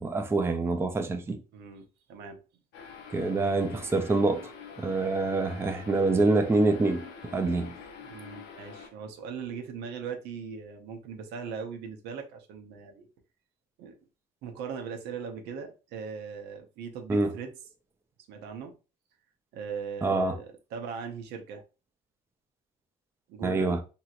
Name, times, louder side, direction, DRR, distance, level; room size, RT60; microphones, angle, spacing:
voice 1, 0.0-1.4 3.1-4.5 4.8-7.0 7.3-7.7 17.1-17.3 20.0-20.4 23.4-23.8, right 3 dB, 15° right, 0.4 m, -26 dB
voice 2, 1.5-2.4 8.0-13.1 13.8-14.0 14.4-17.5 18.3-18.7 19.5-21.6 23.3-23.8, right 6 dB, 85° right, 0.8 m, -39 dB
sound 1, 2.7-8.9, left 6 dB, 85° left, 0.7 m, -46 dB
2.9 x 2.8 x 2.4 m
cardioid pair, 110°, 17 cm